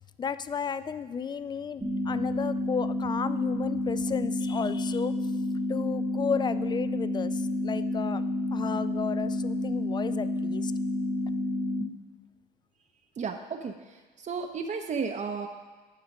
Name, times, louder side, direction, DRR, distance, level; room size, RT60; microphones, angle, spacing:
voice 1, 0.2-5.2 5.7-8.2 8.5-10.7, left 6 dB, 25° left, 14 dB, 0.4 m, -33 dB
sound 1, 1.8-11.8, left 1 dB, 15° right, 1.1 m, -30 dB
voice 2, 13.2-15.5, right 5 dB, 40° right, 5 dB, 0.7 m, -33 dB
8.7 x 4.9 x 5.3 m, 1.4 s
supercardioid pair, 85°, 18 cm